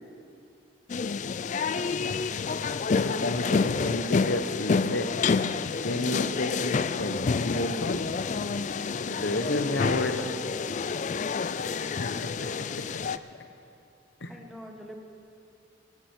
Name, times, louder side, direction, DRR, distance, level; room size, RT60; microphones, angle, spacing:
sound 1, 0.9-13.2, left 5 dB, 40° left, 0.3 m, -28 dB
voice 1, 1.4-1.9 11.3-11.7 14.3-15.0, equal, ahead, 1 dB, 1.3 m, -46 dB
voice 2, 2.9-5.1 5.8-8.1 9.0-10.3 12.0-12.8 14.2-14.3, left 1 dB, 60° left, 7 dB, 1.1 m, -31 dB
14.5 x 10.5 x 8.2 m, 2.6 s
head